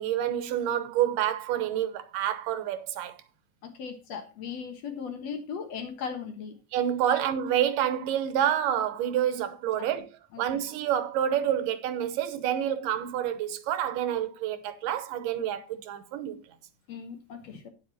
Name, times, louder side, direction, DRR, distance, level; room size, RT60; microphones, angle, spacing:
voice 1, 0.0-3.1 6.7-10.1 10.4-16.4, right 10 dB, 85° right, 2.6 m, -28 dB
voice 2, 3.6-6.6 7.1-7.2 9.8-9.9 10.3-10.6 16.9-17.7, left 6 dB, 60° left, 2.3 m, -38 dB
9.6 x 8.1 x 4.2 m
omnidirectional pair, 3.8 m